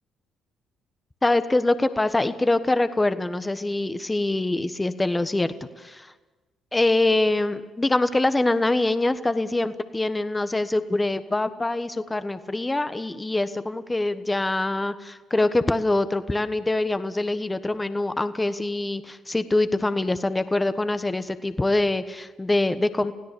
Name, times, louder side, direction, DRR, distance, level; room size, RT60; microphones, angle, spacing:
voice 1, 1.2-5.5 5.8-6.1 6.7-23.1, left 2 dB, 20° left, 11 dB, 1.3 m, -24 dB
29.0 x 17.0 x 7.0 m, 1.3 s
hypercardioid pair, 50°, 0 cm